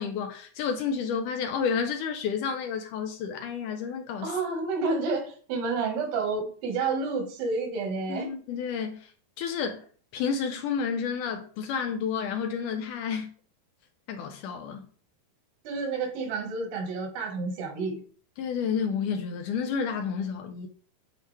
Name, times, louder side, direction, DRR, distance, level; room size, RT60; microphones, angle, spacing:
voice 1, 0.0-4.3 8.1-9.1 9.4-9.8 10.1-13.3 14.1-14.9 18.4-20.7, left 6 dB, 80° left, 1.9 m, -30 dB
voice 2, 4.2-8.3 15.7-18.0, right 4 dB, 85° right, 3.7 m, -30 dB
9.4 x 4.7 x 3.4 m
omnidirectional pair, 4.5 m